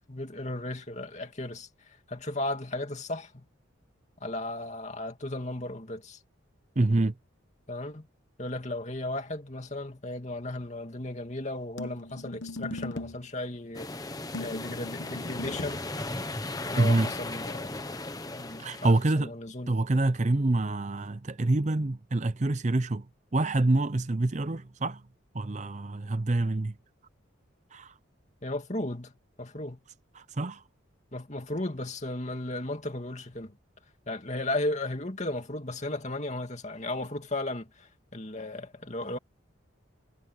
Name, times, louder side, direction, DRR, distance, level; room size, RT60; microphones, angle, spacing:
voice 1, 0.1-1.7 2.1-3.4 4.2-6.2 7.7-8.1 8.4-13.9 14.4-15.8 16.7-17.7 18.2-19.8 28.4-29.1 29.4-29.8 31.1-33.5 34.1-39.2, left 2 dB, 35° left, 2.5 m, -35 dB
voice 2, 6.8-7.1 16.8-17.1 18.6-19.3 19.7-23.1 23.3-25.0 25.3-26.7 27.7-27.9 30.2-30.6, right 2 dB, 35° right, 0.6 m, -26 dB
sound 1, 11.8-13.3 14.3-15.8, left 2 dB, 65° left, 1.1 m, -39 dB
sound 2, 13.7-19.1, left 2 dB, 20° left, 1.1 m, -36 dB
head